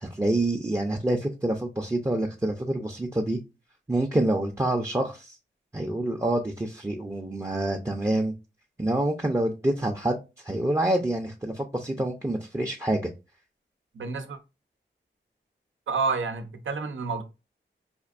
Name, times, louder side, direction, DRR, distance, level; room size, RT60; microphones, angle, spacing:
voice 1, 0.0-3.4 3.9-5.4 5.7-8.3 8.8-10.2 10.4-13.0, right 1 dB, 15° right, 0.5 m, -27 dB
voice 2, 14.0-14.4 15.9-17.2, right 4 dB, 85° right, 0.6 m, -29 dB
4.3 x 2.5 x 2.4 m
cardioid pair, 55°, 20 cm